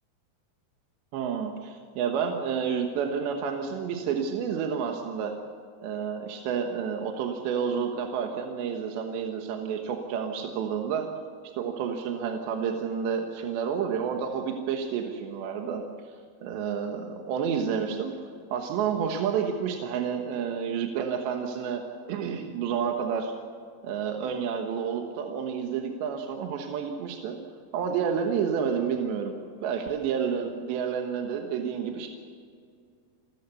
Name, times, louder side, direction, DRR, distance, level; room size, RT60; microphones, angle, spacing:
voice 1, 1.1-5.3 5.8-11.1 11.6-15.8 16.4-18.1 18.5-21.8 22.1-23.3 23.8-27.4 27.7-29.3 29.6-32.1, right 7 dB, 70° right, 3 dB, 3.2 m, -30 dB
29.5 x 14.0 x 7.0 m, 2.2 s
omnidirectional pair, 6.0 m